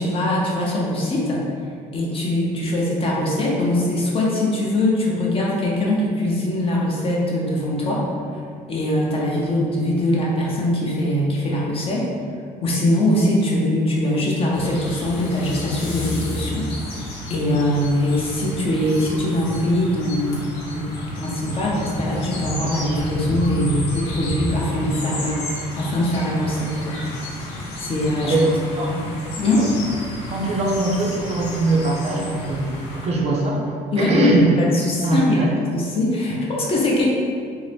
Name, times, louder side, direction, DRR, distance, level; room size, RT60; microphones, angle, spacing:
voice 1, 0.0-1.5 1.9-8.0 8.7-12.1 12.6-16.7 16.9-17.0 17.3-20.5 20.7-27.3 27.8-28.4 28.9-29.1 29.4-29.7 33.9-37.1, left 1 dB, 35° left, -4 dB, 0.6 m, -22 dB
sound 1, 14.5-33.1, equal, 85° left, 0.8 m, -31 dB
voice 2, 28.2-29.1 29.6-29.7 30.3-34.5 35.0-35.5, right 2 dB, 40° right, -2 dB, 0.5 m, -22 dB
2.7 x 2.0 x 3.2 m, 2.2 s
cardioid pair, 110°, 17 cm